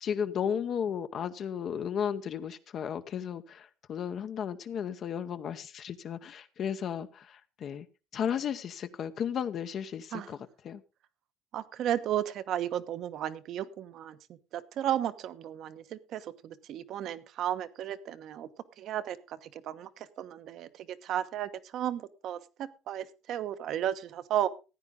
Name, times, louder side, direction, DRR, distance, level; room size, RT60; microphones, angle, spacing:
voice 1, 0.0-7.9 8.1-10.4 10.6-10.8, left 8 dB, 45° left, 10 dB, 0.8 m, -34 dB
voice 2, 11.5-14.2 14.5-18.5 18.8-24.5, right 11 dB, 55° right, 12 dB, 1.0 m, -34 dB
15.0 x 9.6 x 3.7 m, 0.31 s
cardioid pair, 130°, 0 cm